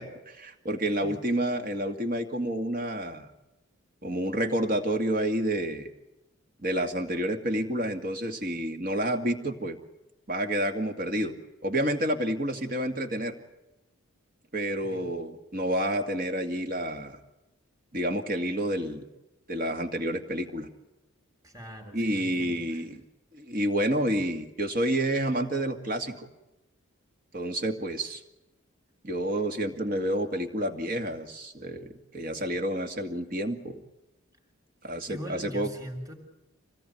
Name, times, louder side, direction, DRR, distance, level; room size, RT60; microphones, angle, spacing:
voice 1, 0.0-3.3 4.0-5.9 6.6-9.8 10.3-11.3 11.6-13.3 14.5-17.2 17.9-19.0 19.5-20.7 21.9-23.0 23.3-26.3 27.3-28.2 29.0-33.8 34.8-35.7, right 1 dB, 40° right, 5 dB, 2.3 m, -29 dB
voice 2, 14.8-15.1 21.4-22.8 35.1-36.1, equal, 15° right, 2 dB, 3.7 m, -41 dB
25.5 x 18.5 x 9.3 m, 0.94 s
head